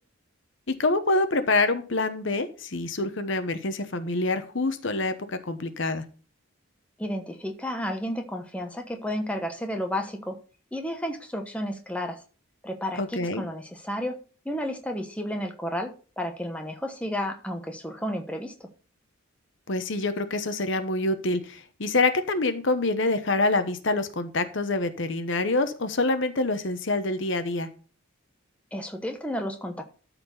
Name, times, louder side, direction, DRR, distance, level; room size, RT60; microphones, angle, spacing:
voice 1, 0.7-6.0 13.0-13.4 19.7-27.7, left 2 dB, 60° left, 10 dB, 1.0 m, -26 dB
voice 2, 7.0-10.4 10.7-12.2 12.6-14.2 14.4-18.7 28.7-29.8, equal, 5° left, 4 dB, 1.0 m, -32 dB
13.0 x 4.4 x 5.4 m, 0.38 s
head